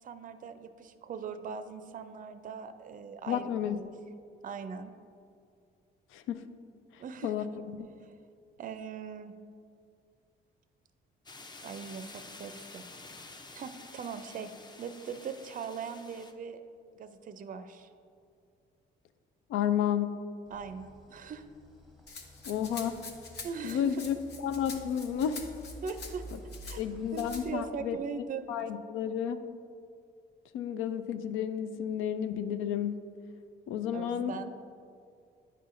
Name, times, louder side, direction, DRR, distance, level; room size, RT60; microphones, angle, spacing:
voice 1, 0.0-3.9 4.4-4.9 7.0-7.5 8.0-8.1 8.6-9.3 11.6-12.8 13.5-14.5 14.8-16.6 16.9-17.9 20.5-21.4 23.4-24.0 25.8-26.2 26.7-26.8 27.1-28.5 33.9-34.5, right 6 dB, 45° right, 10 dB, 0.4 m, -40 dB
voice 2, 3.3-3.8 6.1-6.5 7.2-7.9 19.5-20.2 22.5-23.1 23.6-24.1 24.4-25.4 26.8-28.0 28.5-29.4 30.5-33.0 33.7-34.3, left 9 dB, 90° left, 10 dB, 0.4 m, -31 dB
sound 1, 11.3-16.3, left 3 dB, 20° left, 0.5 m, -49 dB
sound 2, 20.5-27.5, right 1 dB, ahead, 0.8 m, -50 dB
Rattle (instrument), 22.1-26.8 27.1-27.4, left 4 dB, 55° left, 1.0 m, -46 dB
9.3 x 5.6 x 2.5 m, 2.3 s
cardioid pair, 90°, 20 cm